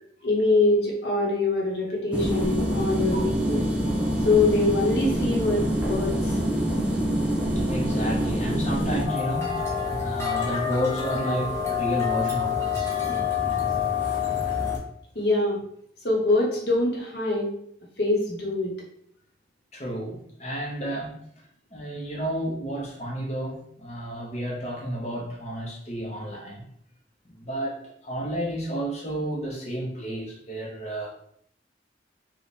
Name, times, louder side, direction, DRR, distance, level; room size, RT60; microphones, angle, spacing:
voice 1, 0.2-3.7 4.2-6.4 15.1-15.6 16.0-17.5 18.0-18.7, left 2 dB, 65° left, 1.0 m, -24 dB
sound 1, 2.1-9.1, equal, 5° right, 0.6 m, -25 dB
voice 2, 7.6-9.6 10.0-13.0 19.7-21.4 21.7-26.6 27.2-31.1, equal, 35° left, 0.9 m, -31 dB
sound 2, 9.0-14.8, left 7 dB, 15° left, 1.0 m, -27 dB
3.3 x 2.4 x 4.1 m
head